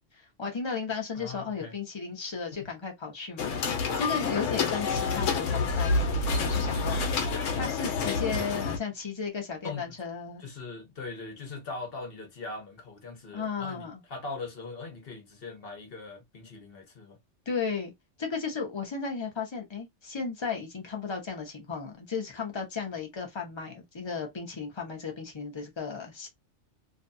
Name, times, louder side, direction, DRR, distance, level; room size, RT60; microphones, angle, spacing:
voice 1, 0.1-10.4 13.3-14.0 17.5-17.9 18.2-26.3, left 5 dB, 30° left, 0.7 m, -35 dB
voice 2, 1.1-1.7 9.6-10.0 10.4-17.2, left 3 dB, 55° left, 1.0 m, -40 dB
sound 1, 3.4-8.8, left 4 dB, 80° left, 1.0 m, -28 dB
2.6 x 2.2 x 2.6 m
omnidirectional pair, 1.3 m